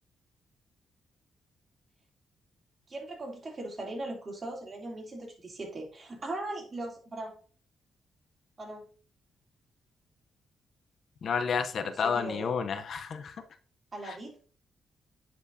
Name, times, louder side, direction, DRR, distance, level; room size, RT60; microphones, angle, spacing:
voice 1, 2.9-7.4 8.6-8.8 11.8-12.5 13.9-14.4, right 2 dB, 40° right, 0 dB, 2.9 m, -39 dB
voice 2, 11.2-13.4 14.0-14.2, left 6 dB, 65° left, 10 dB, 0.6 m, -30 dB
9.9 x 4.5 x 2.6 m, 0.40 s
cardioid pair, 70°, 0 cm